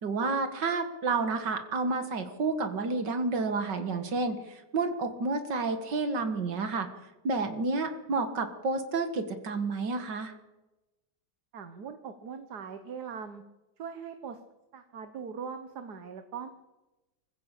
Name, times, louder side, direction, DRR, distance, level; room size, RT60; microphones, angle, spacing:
voice 1, 0.0-6.9 7.2-10.3, right 3 dB, 85° right, 7 dB, 2.4 m, -30 dB
voice 2, 11.5-13.4 13.8-14.4 14.7-16.5, right 6 dB, 70° right, 8 dB, 1.8 m, -41 dB
24.5 x 15.0 x 8.4 m, 1.0 s
omnidirectional pair, 1.8 m